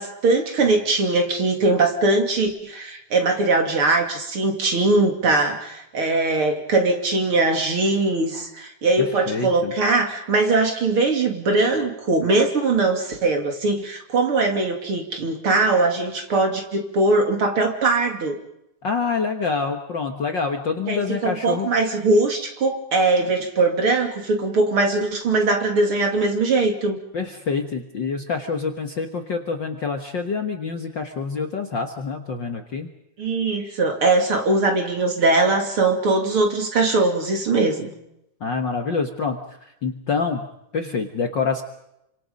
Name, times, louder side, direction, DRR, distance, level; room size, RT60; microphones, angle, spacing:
voice 1, 0.0-18.4 20.9-27.0 33.2-37.9, right 3 dB, 45° right, 3 dB, 3.4 m, -21 dB
voice 2, 9.3-9.7 18.8-21.7 27.1-32.9 38.4-40.5 40.7-41.6, left 5 dB, 45° left, 4 dB, 1.7 m, -26 dB
29.0 x 26.0 x 5.3 m, 0.82 s
omnidirectional pair, 3.4 m